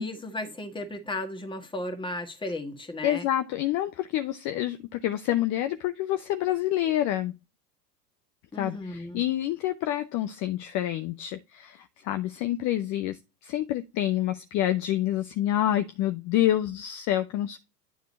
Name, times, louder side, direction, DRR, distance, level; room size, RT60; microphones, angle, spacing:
voice 1, 0.0-3.3 8.5-9.2, left 1 dB, 10° left, 1.6 m, -35 dB
voice 2, 3.0-7.3 8.6-17.7, left 13 dB, 35° left, 0.7 m, -28 dB
9.4 x 3.7 x 4.1 m
hypercardioid pair, 100°, 48 cm